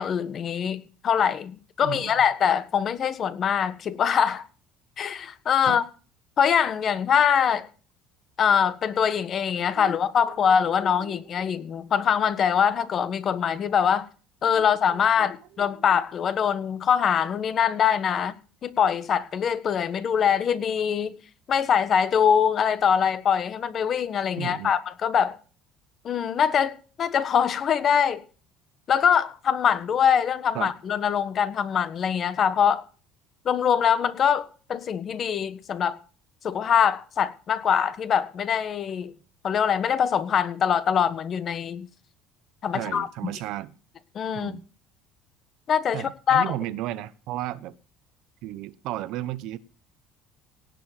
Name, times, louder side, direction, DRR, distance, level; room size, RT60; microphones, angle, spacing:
voice 1, 0.0-4.5 5.0-5.8 6.4-7.7 8.4-14.1 14.4-18.3 18.6-21.1 21.5-25.4 26.0-28.2 28.9-32.8 33.4-36.0 36.4-39.1 39.4-41.9 42.6-43.3 44.1-44.6 45.7-46.5, left 8 dB, 40° left, 1.4 m, -23 dB
voice 2, 1.8-2.1 5.6-5.8 9.8-9.9 10.3-11.2 14.5-14.6 14.9-15.3 15.7-15.8 24.4-24.7 30.5-30.7 42.7-43.7 44.3-44.6 45.9-47.8 48.4-49.6, right 14 dB, 70° right, 1.0 m, -34 dB
18.0 x 6.9 x 7.5 m
cardioid pair, 130°, 0 cm